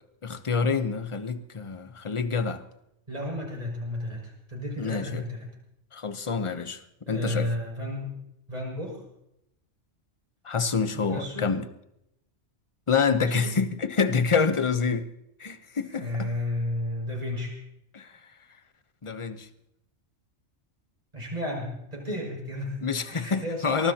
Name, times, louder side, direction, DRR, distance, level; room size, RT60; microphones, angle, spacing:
voice 1, 0.2-2.6 4.8-5.2 5.9-6.8 7.1-7.5 10.4-11.6 12.9-15.1 15.4-16.3 17.9-18.2 19.0-19.5 22.8-23.9, left 5 dB, 30° left, 10 dB, 0.9 m, -27 dB
voice 2, 3.1-5.5 7.1-8.2 8.5-9.0 10.9-11.5 13.1-13.6 15.9-17.5 21.1-22.8 23.1-23.9, left 1 dB, 35° right, -2 dB, 6.7 m, -33 dB
24.0 x 19.5 x 2.9 m, 0.82 s
omnidirectional pair, 1.2 m